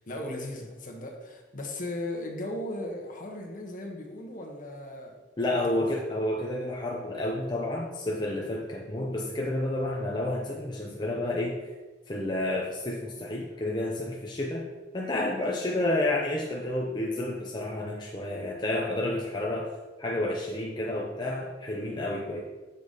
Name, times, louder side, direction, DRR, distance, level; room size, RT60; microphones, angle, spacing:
voice 1, 0.0-5.2 5.6-5.9, left 1 dB, 50° left, 1 dB, 1.1 m, -37 dB
voice 2, 5.4-11.6 12.1-14.7 14.9-19.7 20.0-22.4, left 1 dB, 25° left, -3 dB, 0.6 m, -30 dB
6.7 x 4.1 x 5.0 m, 1.2 s
head